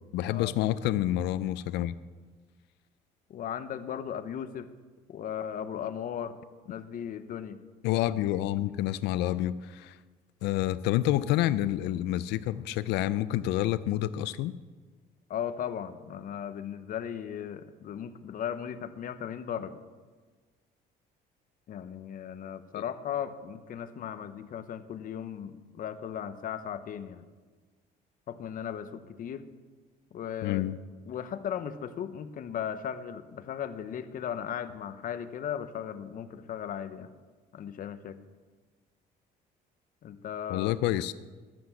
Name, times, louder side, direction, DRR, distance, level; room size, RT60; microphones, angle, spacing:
voice 1, 0.1-2.0 7.8-10.0 10.4-14.5 30.4-30.8 40.5-41.1, left 14 dB, 85° left, 15 dB, 0.4 m, -28 dB
voice 2, 3.3-4.7 5.1-6.3 6.7-7.6 15.3-19.8 21.7-27.2 28.3-29.5 30.1-30.7 31.1-37.1 37.5-38.2 40.0-40.8, left 9 dB, 55° left, 11 dB, 0.9 m, -37 dB
12.0 x 7.7 x 7.1 m, 1.4 s
cardioid pair, 110°, 17 cm